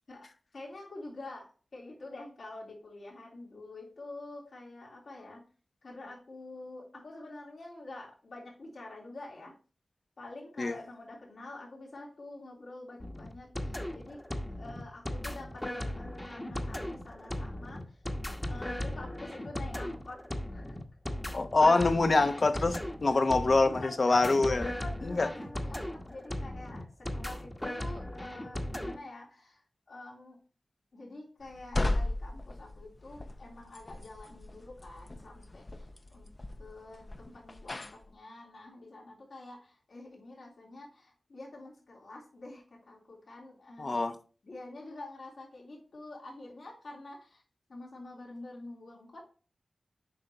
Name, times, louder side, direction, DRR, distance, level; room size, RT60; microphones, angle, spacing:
voice 1, 0.5-1.5 1.7-5.4 5.8-9.5 10.2-14.2 14.6-18.0 18.4-20.2 20.5-20.8 23.6-30.4 30.9-35.9 36.1-36.3 36.6-44.0 44.4-47.4 47.7-49.2, left 2 dB, 80° left, 3.4 m, -47 dB
sound 1, 13.0-29.0, left 1 dB, 15° left, 1.1 m, -37 dB
voice 2, 21.3-24.7 25.0-25.3 43.8-44.1, left 3 dB, 55° left, 0.9 m, -25 dB
sound 2, 31.4-38.1, left 2 dB, 40° left, 0.6 m, -36 dB
8.3 x 5.4 x 2.9 m
wide cardioid pair, 65°, 0 cm